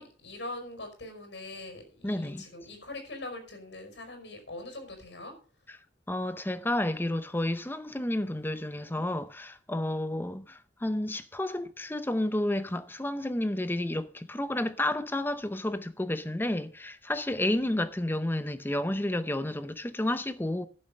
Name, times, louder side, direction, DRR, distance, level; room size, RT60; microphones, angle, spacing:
voice 1, 0.0-5.4, left 2 dB, 80° left, 5.4 m, -42 dB
voice 2, 2.0-2.5 6.1-20.7, left 1 dB, 10° left, 0.7 m, -31 dB
11.5 x 7.0 x 6.6 m
head